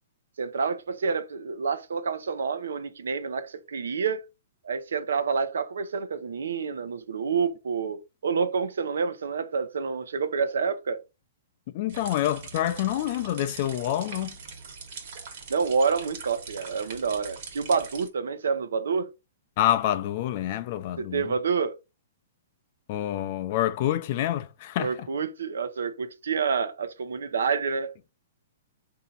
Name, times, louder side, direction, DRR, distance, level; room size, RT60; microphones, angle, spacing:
voice 1, 0.4-4.2 4.6-11.0 15.5-19.1 21.0-21.8 24.8-27.9, right 5 dB, 90° right, 0.6 m, -28 dB
voice 2, 11.7-14.3 19.6-21.2 22.9-25.1, left 12 dB, 45° left, 0.4 m, -27 dB
sound 1, 11.9-18.1, right 5 dB, 55° right, 1.2 m, -42 dB
4.0 x 2.7 x 3.7 m
hypercardioid pair, 155°, 0 cm